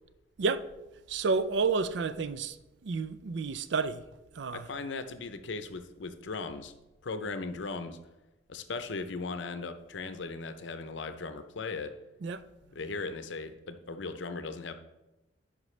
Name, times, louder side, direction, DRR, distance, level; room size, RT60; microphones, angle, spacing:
voice 1, 1.1-2.6 2.8-4.0 4.3-4.7 12.2-12.4, right 4 dB, 65° right, 0.4 m, -30 dB
voice 2, 4.5-6.7 7.0-8.0 8.5-11.9 12.6-14.7, left 3 dB, 70° left, 0.6 m, -38 dB
10.0 x 5.2 x 3.2 m
head